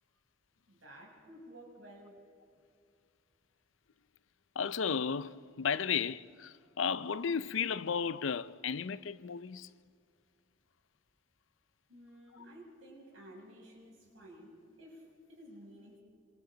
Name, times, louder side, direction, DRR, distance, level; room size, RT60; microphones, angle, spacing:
voice 1, 0.7-2.2 11.9-16.0, equal, 80° right, 6.9 m, -53 dB
voice 2, 4.6-9.7, left 6 dB, 75° left, 0.5 m, -34 dB
27.5 x 26.5 x 3.9 m
head